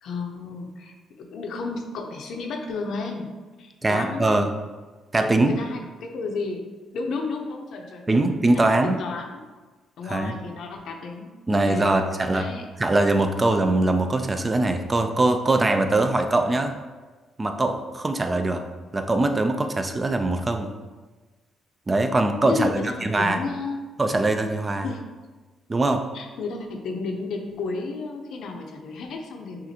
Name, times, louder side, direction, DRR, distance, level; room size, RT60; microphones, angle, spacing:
voice 1, 0.0-3.3 3.6-4.5 5.1-6.6 6.9-8.2 8.5-9.4 10.0-11.3 11.6-12.7 22.5-23.8 24.8-25.0 26.1-29.7, left 4 dB, 70° left, 3 dB, 0.6 m, -32 dB
voice 2, 3.8-4.5 5.1-5.6 8.1-9.0 10.1-10.3 11.5-12.5 12.8-16.7 17.4-18.6 18.9-20.7 21.9-23.4 24.0-24.9 25.7-26.0, right 2 dB, 25° right, 6 dB, 0.4 m, -22 dB
5.8 x 2.5 x 2.8 m, 1.3 s
cardioid pair, 90°, 0 cm